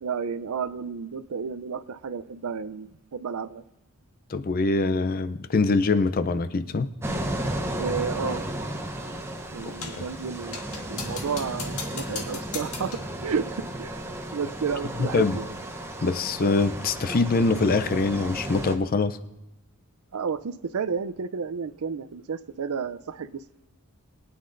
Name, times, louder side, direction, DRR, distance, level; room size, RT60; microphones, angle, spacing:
voice 1, 0.0-3.6 7.8-8.4 9.5-15.5 20.1-23.4, right 6 dB, 75° right, 15 dB, 0.5 m, -32 dB
voice 2, 4.3-6.9 10.0-10.1 15.0-15.4 16.0-19.2, left 3 dB, 40° left, 12 dB, 0.5 m, -24 dB
sound 1, 7.0-18.8, right 1 dB, 10° right, 0.8 m, -34 dB
sound 2, 9.8-10.1 10.5-13.1, left 5 dB, 80° left, 1.6 m, -38 dB
22.0 x 9.4 x 2.6 m, 0.97 s
head